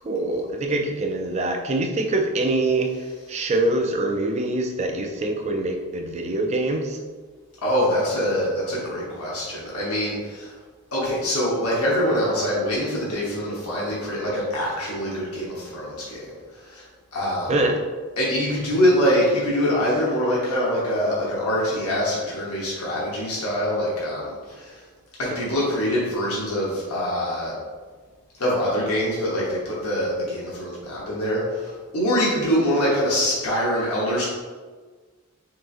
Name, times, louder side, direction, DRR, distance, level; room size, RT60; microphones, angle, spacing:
voice 1, 0.0-2.9 3.3-7.0 17.5-17.8, right 2 dB, 30° right, 3 dB, 0.4 m, -24 dB
voice 2, 7.6-10.6 10.9-16.8 17.1-17.6 18.2-24.8 25.2-27.6 28.4-34.3, equal, 85° left, -6 dB, 1.0 m, -24 dB
5.9 x 2.7 x 2.5 m, 1.5 s
head